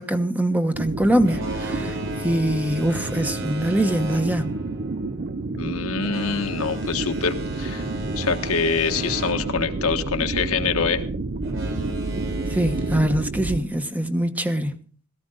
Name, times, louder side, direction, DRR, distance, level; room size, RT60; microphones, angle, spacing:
voice 1, 0.0-4.5 12.5-14.8, right 1 dB, 5° right, 1.1 m, -23 dB
sound 1, 0.7-13.6, right 3 dB, 45° right, 0.6 m, -30 dB
Boat Water vehicle, 1.2-10.6 11.4-13.0, right 1 dB, 60° right, 4.4 m, -36 dB
voice 2, 5.5-7.9 8.1-11.0, left 5 dB, 90° left, 1.5 m, -25 dB
17.5 x 14.0 x 3.9 m
head